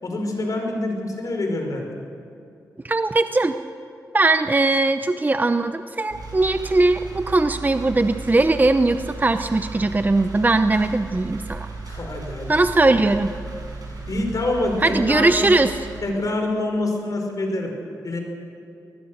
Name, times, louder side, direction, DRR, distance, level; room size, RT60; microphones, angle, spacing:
voice 1, 0.0-1.9 11.9-12.7 14.1-15.6 16.0-17.7 18.0-18.2, left 2 dB, 60° left, 2 dB, 5.3 m, -26 dB
voice 2, 2.8-3.5 4.1-11.7 12.5-13.3 14.8-15.8, right 2 dB, 25° right, 9 dB, 0.8 m, -20 dB
sound 1, 6.1-16.0, right 3 dB, 65° right, 6.9 m, -36 dB
23.0 x 19.5 x 6.6 m, 2.6 s
cardioid pair, 60°, 7 cm